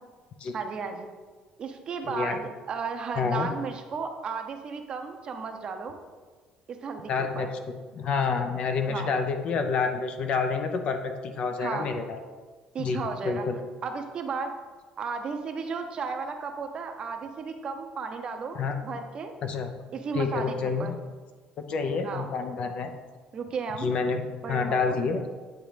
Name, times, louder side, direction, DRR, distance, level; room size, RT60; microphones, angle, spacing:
voice 1, 0.5-1.1 1.6-6.0 6.7-7.5 8.9-9.1 11.6-11.9 12.7-13.5 13.8-14.5 15.0-19.3 19.9-20.9 22.0-22.3 23.3-23.9 24.4-25.0, right 5 dB, 40° right, 5 dB, 0.7 m, -34 dB
voice 2, 2.0-2.4 3.2-3.5 7.1-7.5 7.9-12.2 12.8-13.5 18.5-18.7 19.4-19.7 20.1-20.9 21.7-22.9 23.8-24.2 24.5-25.2, left 5 dB, 50° left, 7 dB, 0.7 m, -28 dB
8.7 x 3.0 x 5.0 m, 1.4 s
cardioid pair, 125°, 2 cm